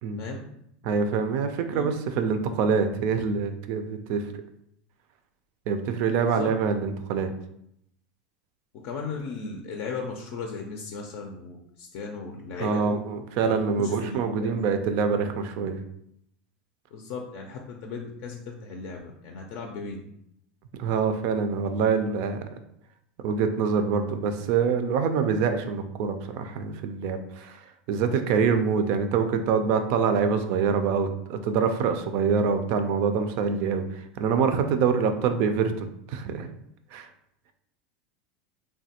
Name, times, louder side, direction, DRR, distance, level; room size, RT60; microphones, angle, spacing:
voice 1, 0.8-4.3 5.7-7.3 12.6-15.8 20.8-22.4 23.2-27.6 27.9-36.5 36.9-37.1, right 5 dB, 60° right, 8 dB, 0.4 m, -25 dB
voice 2, 6.2-6.5 8.8-13.0 13.4-14.6 16.9-20.0, left 4 dB, 60° left, 2 dB, 0.4 m, -36 dB
3.2 x 2.2 x 2.8 m, 0.75 s
hypercardioid pair, 100°, 4 cm